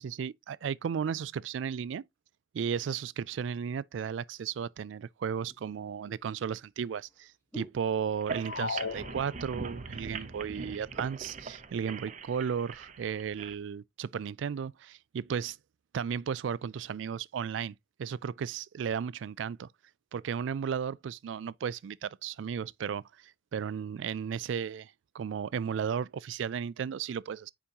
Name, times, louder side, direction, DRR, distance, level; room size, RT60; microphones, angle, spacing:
voice 1, 0.0-2.0 2.5-15.6 15.9-19.7 20.1-23.0 23.5-27.5, right 7 dB, 75° right, 0.3 m, -34 dB
sound 1, 4.5-4.6 5.4-8.6 8.8-9.3 9.7-9.8 10.1-10.8 11.5-12.2 12.8-13.0, right 2 dB, 15° left, 1.4 m, -52 dB
sound 2, 8.1-13.5, right 4 dB, 40° right, 0.7 m, -42 dB
sound 3, 8.4-9.9, left 5 dB, 65° left, 0.5 m, -37 dB
6.9 x 5.1 x 2.9 m
head